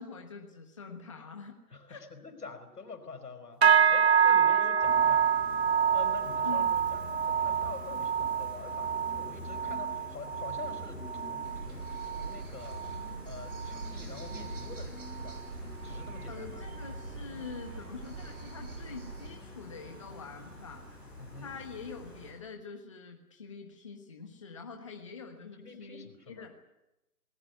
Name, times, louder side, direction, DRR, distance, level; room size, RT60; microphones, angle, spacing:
voice 1, 0.0-1.6 1.9-2.0 4.1-5.5 6.4-6.7 16.3-20.9 21.4-26.5, left 5 dB, 20° left, 2 dB, 1.4 m, -45 dB
voice 2, 1.7-5.2 5.9-11.9 12.2-15.4 15.8-16.6 21.2-21.6 25.6-26.5, left 4 dB, 85° left, 9 dB, 5.0 m, -46 dB
sound 1, 3.6-13.2 13.5-13.9 14.3-14.6 15.2-15.3, right 7 dB, 45° right, 1.1 m, -27 dB
Gull seagull, 4.8-22.3, left 1 dB, ahead, 5.0 m, -46 dB
sound 2, 11.4-19.3, right 3 dB, 70° right, 6.4 m, -44 dB
19.5 x 19.5 x 9.5 m, 0.94 s
hypercardioid pair, 175°, 46 cm